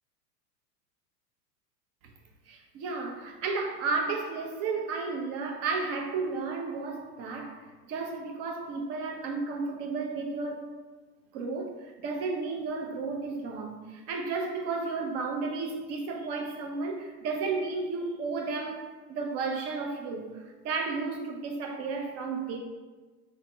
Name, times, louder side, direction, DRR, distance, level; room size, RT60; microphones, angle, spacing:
voice 1, 2.5-7.6 7.9-10.8 11.3-22.6, right 4 dB, 30° right, 3 dB, 0.5 m, -33 dB
4.1 x 2.0 x 4.4 m, 1.3 s
hypercardioid pair, 115°, 48 cm